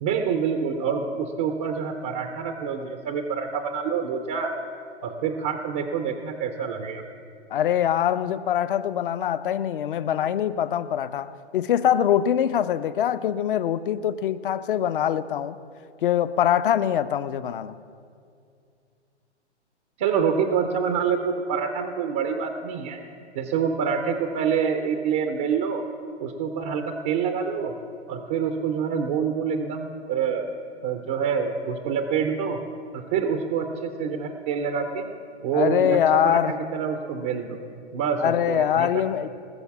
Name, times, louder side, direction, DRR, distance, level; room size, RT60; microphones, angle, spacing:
voice 1, 0.0-4.5 5.0-7.0 20.0-23.0 23.3-25.8 26.2-27.8 28.1-30.5 30.8-32.6 32.9-35.1 35.4-37.6 37.9-39.0, right 6 dB, 15° right, 6 dB, 0.4 m, -26 dB
voice 2, 7.5-15.6 16.0-17.7 35.5-36.6 38.2-39.3, left 10 dB, 50° left, 14 dB, 0.5 m, -23 dB
19.5 x 6.6 x 7.0 m, 2.4 s
hypercardioid pair, 140°, 35 cm